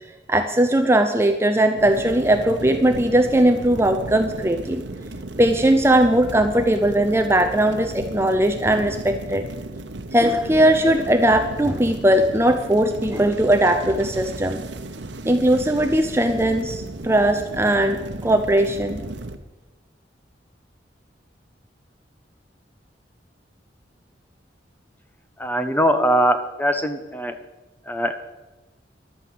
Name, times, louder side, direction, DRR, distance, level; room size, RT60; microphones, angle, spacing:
voice 1, 0.3-4.8 5.4-9.4 10.1-14.6 15.2-19.0, right 1 dB, 15° right, 6 dB, 0.6 m, -19 dB
sound 1, 1.8-19.4, right 2 dB, 85° right, 0.9 m, -35 dB
voice 2, 25.4-27.3 27.9-28.2, equal, 10° left, 8 dB, 0.9 m, -21 dB
11.5 x 8.9 x 7.8 m, 1.1 s
head